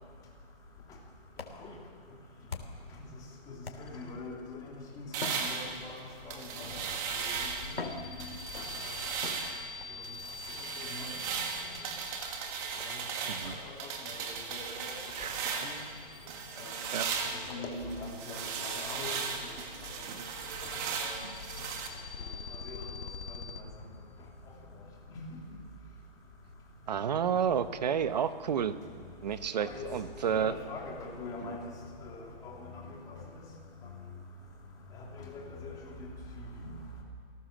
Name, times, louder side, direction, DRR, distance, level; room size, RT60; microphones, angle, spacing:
sound 1, 1.2-3.0 3.6-4.2 5.1-6.2 7.1-7.2 7.7-8.7 9.2-9.9 11.4-11.7 12.8-13.0 13.6-13.7 14.1-14.2 14.5-14.7 15.0-15.1 15.5-15.6 16.0-16.1 16.5-16.6 17.5-17.6, left 4 dB, 85° left, 3.5 m, -44 dB
voice 1, 3.5-6.8 7.2-7.8 8.1-8.2 8.6-8.9 10.9-11.1 12.8-13.0 13.4-14.9 15.5-15.8 16.6-16.7 17.5-19.6 20.6-21.1 22.5-22.9 23.3-23.7 25.1-25.3 29.6-29.9 30.2-31.7 32.0-33.2 34.9-35.7 36.4-36.5, left 3 dB, 10° left, -2 dB, 3.1 m, -43 dB
sound 2, 3.8-4.4 4.7-5.2 7.1-17.5 19.5-23.6, left 5 dB, 65° left, 2.0 m, -46 dB
sound 3, 5.1-7.8 8.2-9.7 10.0-15.9 16.3-21.9, right 6 dB, 20° right, 1.7 m, -37 dB
voice 2, 26.9-28.7 29.2-30.6 31.5-31.6, right 8 dB, 45° right, 12 dB, 1.2 m, -30 dB
28.0 x 17.0 x 7.4 m, 2.1 s
hypercardioid pair, 165°, 30 cm